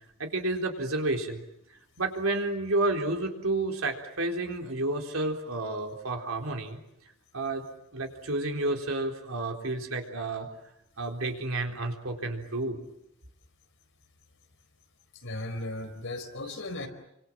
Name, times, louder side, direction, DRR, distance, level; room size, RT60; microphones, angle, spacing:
voice 1, 0.2-1.4 2.0-6.8 7.3-7.7 7.9-10.5 11.0-12.9 16.5-16.6, right 2 dB, 70° right, 3 dB, 4.0 m, -30 dB
voice 2, 15.2-16.9, left 2 dB, 65° left, 6 dB, 4.6 m, -36 dB
29.5 x 25.5 x 7.6 m, 0.80 s
head